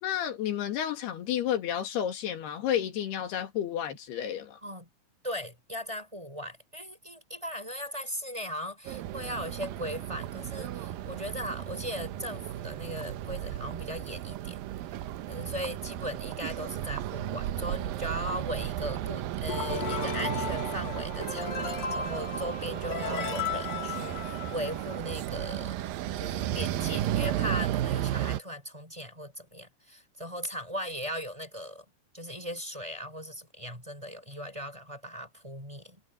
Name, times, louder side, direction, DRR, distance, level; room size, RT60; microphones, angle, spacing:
voice 1, 0.0-4.6, left 10 dB, 85° left, 4.1 m, -31 dB
voice 2, 5.2-14.6 14.9-25.8 26.2-31.8 32.1-36.0, equal, 5° right, 6.3 m, -38 dB
sound 1, 8.8-28.4, right 12 dB, 75° right, 2.5 m, -34 dB
sound 2, 19.5-25.0, left 6 dB, 60° left, 6.8 m, -35 dB
omnidirectional pair, 4.5 m